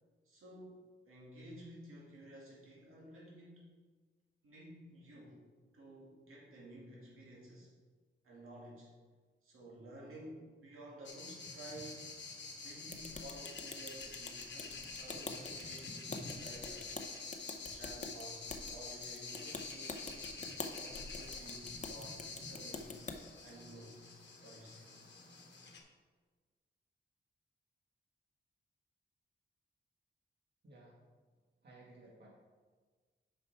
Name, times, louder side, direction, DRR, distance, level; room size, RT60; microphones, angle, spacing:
voice 1, 0.2-0.8 1.1-3.7 4.4-5.4 5.7-7.7 8.2-8.9 9.4-12.1 12.6-16.9 17.6-20.2 20.8-23.0 23.4-24.0 24.4-24.9, right 1 dB, 90° right, -5 dB, 2.2 m, -53 dB
sound 1, 11.0-25.8, left 4 dB, 60° left, 1.2 m, -47 dB
sound 2, 12.9-23.2, left 4 dB, 35° left, 0.7 m, -46 dB
voice 2, 30.6-31.0 31.6-32.3, right 2 dB, 55° right, -4 dB, 1.8 m, -57 dB
6.7 x 5.8 x 4.8 m, 1.5 s
wide cardioid pair, 100°, 21 cm